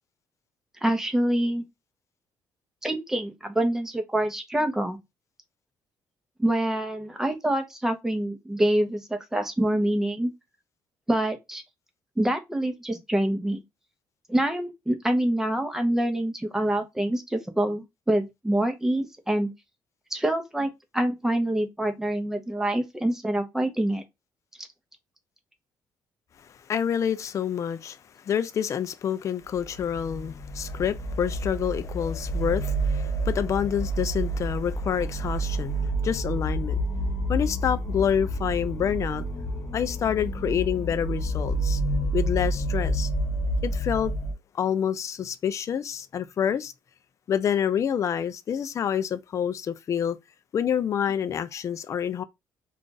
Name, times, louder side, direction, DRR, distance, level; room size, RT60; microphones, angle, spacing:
voice 1, 0.8-1.6 2.8-5.0 6.4-10.3 11.1-11.6 12.2-13.6 14.3-19.5 20.1-24.0, right 1 dB, 5° right, 0.7 m, -26 dB
voice 2, 26.7-28.0 28.2-35.8 36.0-36.8 37.3-39.2 39.7-41.8 42.1-43.1 43.6-44.1 44.5-46.7 47.3-50.2 50.5-52.2, left 8 dB, 45° left, 0.4 m, -27 dB
sound 1, 29.5-44.3, right 1 dB, 25° left, 0.9 m, -29 dB
2.4 x 2.4 x 3.8 m
cardioid pair, 100°, 7 cm